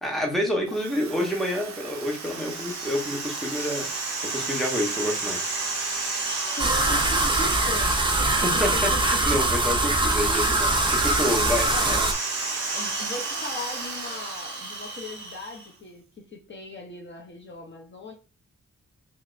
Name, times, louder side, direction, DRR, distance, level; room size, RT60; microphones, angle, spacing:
voice 1, 0.0-5.5 8.4-12.0, left 1 dB, ahead, 0.8 m, -28 dB
Drill, 0.6-15.8, right 7 dB, 70° right, 0.5 m, -41 dB
sound 1, 1.9-15.7, right 3 dB, 40° right, 1.1 m, -32 dB
voice 2, 6.5-9.4 11.0-12.2 12.7-18.1, left 3 dB, 40° left, 0.6 m, -39 dB
sound 2, 6.6-12.1, right 2 dB, 15° right, 0.4 m, -23 dB
3.2 x 3.0 x 2.4 m
wide cardioid pair, 140°, 30 cm